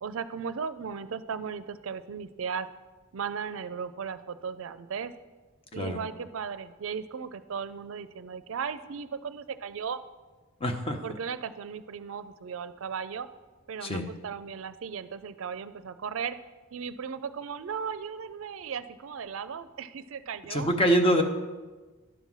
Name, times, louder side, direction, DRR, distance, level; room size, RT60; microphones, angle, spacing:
voice 1, 0.0-2.7 3.1-5.1 5.7-10.0 11.0-13.3 13.7-16.4 16.7-20.7, right 6 dB, 70° right, 13 dB, 0.4 m, -36 dB
voice 2, 10.6-11.0 13.8-14.1 20.5-21.2, equal, 25° left, 4 dB, 0.9 m, -24 dB
11.0 x 5.6 x 6.0 m, 1.3 s
head